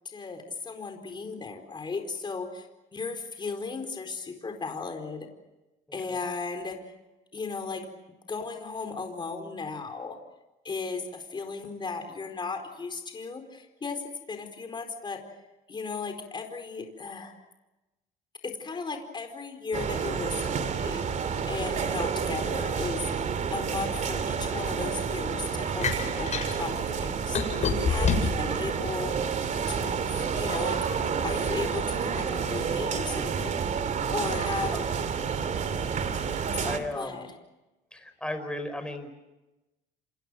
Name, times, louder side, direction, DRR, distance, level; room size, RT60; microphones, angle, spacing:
voice 1, 0.0-5.3 5.9-6.9 7.3-7.9 8.3-10.2 10.6-15.2 15.7-17.3 18.4-21.0 21.4-23.0 23.5-29.2 29.7-33.5 34.1-34.7 36.5-37.3, left 4 dB, 25° left, 5 dB, 4.5 m, -36 dB
sound 1, 19.7-36.8, right 6 dB, 45° right, 2.8 m, -29 dB
sound 2, 25.8-26.5 27.4-28.4 29.0-29.9, left 5 dB, 45° left, 7.2 m, -26 dB
voice 2, 36.7-37.3 37.9-39.1, left 1 dB, 5° left, 8 dB, 5.1 m, -36 dB
29.0 x 26.5 x 6.4 m, 1.0 s
cardioid pair, 110°, 17 cm